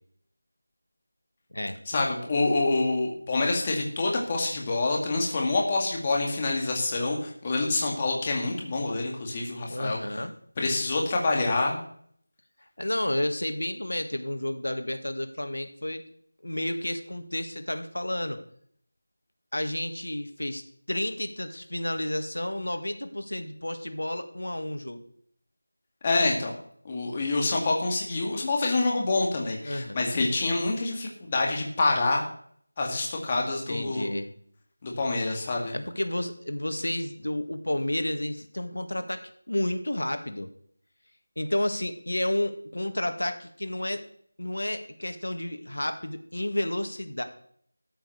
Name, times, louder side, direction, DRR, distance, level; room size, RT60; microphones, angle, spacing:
voice 1, 1.9-10.0 10.6-11.8 26.0-26.5 26.8-32.3 32.8-34.1 34.8-35.7, left 2 dB, 20° left, 0 dB, 2.1 m, -26 dB
voice 2, 9.7-10.3 12.8-16.0 16.4-18.4 19.5-20.6 20.9-25.0 29.6-30.1 33.7-34.3 35.7-40.5 41.4-44.0 44.4-47.2, left 1 dB, 85° left, 7 dB, 2.0 m, -31 dB
13.5 x 7.3 x 6.6 m, 0.63 s
figure-of-eight pair, 175°, 0 cm